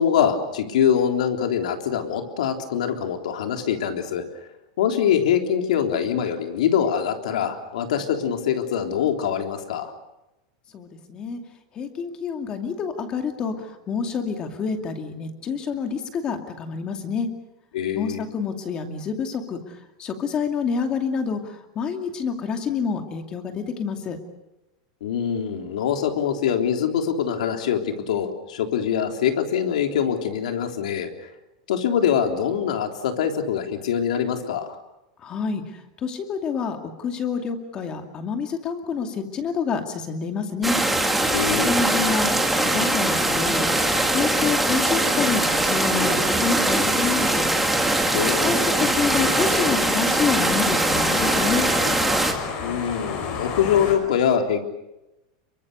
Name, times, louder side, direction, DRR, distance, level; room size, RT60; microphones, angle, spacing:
voice 1, 0.0-4.2 4.8-9.9 17.7-18.2 25.0-31.1 31.7-34.8 41.3-41.8 48.1-48.8 52.6-54.6, left 8 dB, 85° left, 4 dB, 3.6 m, -24 dB
voice 2, 10.7-11.4 11.8-13.5 13.9-17.3 17.9-19.6 20.0-21.4 21.8-24.2 35.2-35.6 36.0-40.8 41.6-42.3 42.6-43.6 44.1-47.4 48.4-51.7, left 5 dB, 20° left, 5 dB, 2.5 m, -27 dB
sound 1, 40.6-52.3, right 1 dB, 5° right, 2.2 m, -21 dB
sound 2, 46.4-53.9, left 5 dB, 40° left, 5.5 m, -33 dB
28.0 x 23.5 x 6.8 m, 0.96 s
supercardioid pair, 170°, 4 cm